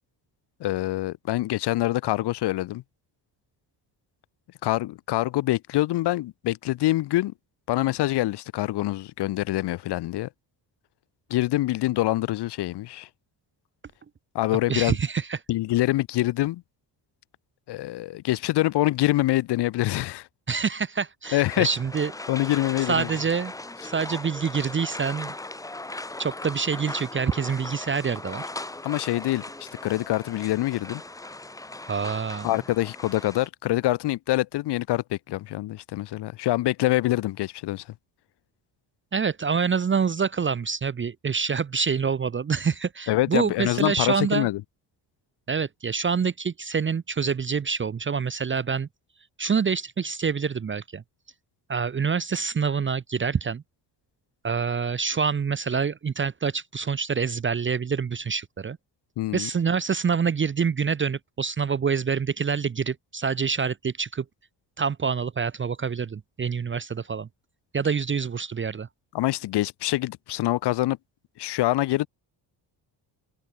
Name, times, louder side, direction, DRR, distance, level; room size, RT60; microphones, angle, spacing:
voice 1, 0.6-2.8 4.6-7.3 7.7-10.3 11.3-13.1 14.3-15.0 15.5-16.6 17.7-20.3 21.3-21.7 22.3-23.1 28.8-31.0 32.4-37.8 43.1-44.6 59.2-59.5 69.1-71.0 71.4-72.1, left 16 dB, 65° left, 0.7 m, -25 dB
voice 2, 14.7-15.4 20.5-22.1 22.9-23.5 23.8-25.3 26.2-28.4 31.9-32.5 39.1-44.5 45.5-48.9 49.4-51.0 51.7-53.6 54.4-58.8 59.3-64.2 64.8-67.3 67.7-68.9, right 6 dB, 25° right, 0.9 m, -26 dB
sound 1, 21.2-33.5, left 2 dB, 10° left, 0.9 m, -38 dB
cardioid pair, 120°, 44 cm